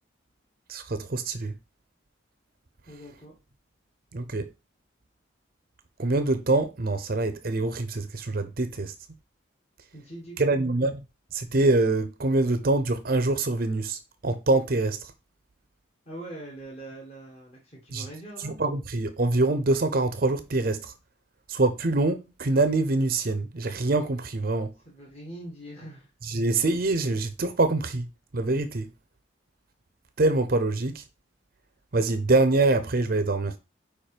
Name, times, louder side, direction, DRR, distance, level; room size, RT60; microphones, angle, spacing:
voice 1, 0.7-1.5 4.1-4.5 6.0-8.9 10.4-11.0 11.3-15.1 17.9-18.0 18.4-20.9 21.5-24.7 26.2-28.1 28.3-28.9 30.2-31.0 31.9-33.5, right 2 dB, 50° right, 0.6 m, -25 dB
voice 2, 2.9-3.3 9.9-10.6 16.0-18.6 24.8-26.1, right 1 dB, 30° left, 1.8 m, -42 dB
4.9 x 4.4 x 4.9 m
head